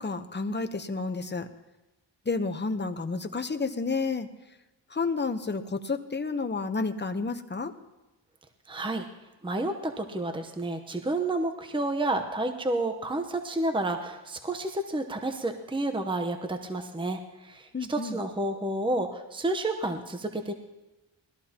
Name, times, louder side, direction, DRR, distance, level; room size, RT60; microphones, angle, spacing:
voice 1, 0.0-1.5 2.3-4.3 4.9-7.7 17.7-18.2, left 4 dB, 25° left, 7 dB, 0.9 m, -30 dB
voice 2, 8.7-9.1 9.4-20.5, right 2 dB, 10° right, 6 dB, 0.9 m, -30 dB
20.0 x 13.5 x 2.9 m, 1.0 s
wide cardioid pair, 75°, 46 cm